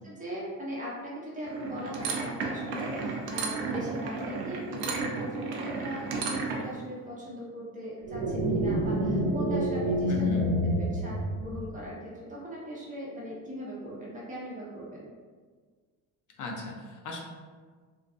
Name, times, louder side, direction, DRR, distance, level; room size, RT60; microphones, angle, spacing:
voice 1, 0.0-10.3 10.7-15.1, equal, 20° right, -6 dB, 1.0 m, -39 dB
sound 1, 1.4-6.7, right 4 dB, 65° right, 0.6 m, -33 dB
sound 2, 8.1-11.7, equal, 85° right, 1.1 m, -28 dB
voice 2, 10.1-10.5 16.4-17.2, left 2 dB, 45° left, 0 dB, 0.6 m, -37 dB
2.5 x 2.3 x 2.5 m, 1.5 s
supercardioid pair, 85°, 42 cm